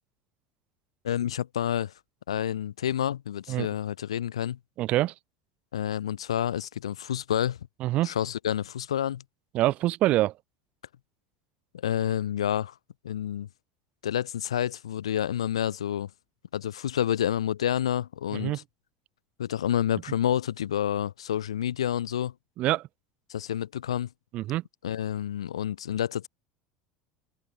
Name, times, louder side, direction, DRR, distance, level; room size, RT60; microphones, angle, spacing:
voice 1, 1.0-1.9 2.3-4.6 5.7-7.6 8.0-9.2 11.7-12.7 13.0-13.5 14.0-16.1 16.5-18.6 19.4-22.3 23.3-24.1 24.8-26.3, left 10 dB, 75° left, 0.9 m, -29 dB
voice 2, 4.8-5.1 7.8-8.1 9.5-10.3 18.3-18.6 22.6-22.9 24.3-24.6, right 16 dB, 45° right, 0.4 m, -25 dB
figure-of-eight pair, 70°, 3 cm